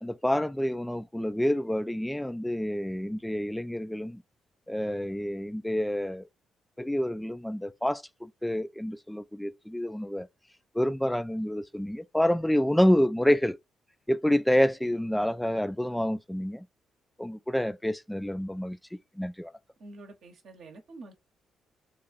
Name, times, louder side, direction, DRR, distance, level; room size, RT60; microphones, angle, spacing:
voice 1, 0.0-4.2 4.7-6.3 6.8-10.3 10.7-13.6 14.1-16.7 17.2-18.8 19.2-19.5, equal, 5° left, 0.3 m, -28 dB
voice 2, 19.8-21.1, right 2 dB, 65° right, 0.8 m, -47 dB
3.0 x 2.4 x 3.8 m
hypercardioid pair, 45°, 0 cm